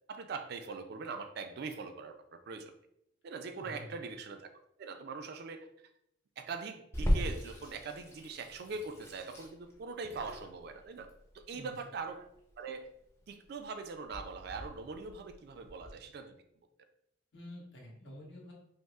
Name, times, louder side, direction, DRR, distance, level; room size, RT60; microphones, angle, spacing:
voice 1, 0.1-2.7 3.2-4.5 4.8-5.7 6.4-12.3 12.6-12.9 13.3-16.4, right 4 dB, 55° right, 8 dB, 0.3 m, -42 dB
voice 2, 3.5-4.0 11.5-11.7 17.3-18.5, left 1 dB, 65° left, -3 dB, 1.1 m, -48 dB
Water tap faucet / Sink (filling or washing), 6.9-15.9, equal, 15° left, 0.5 m, -38 dB
5.2 x 2.0 x 2.3 m, 0.77 s
head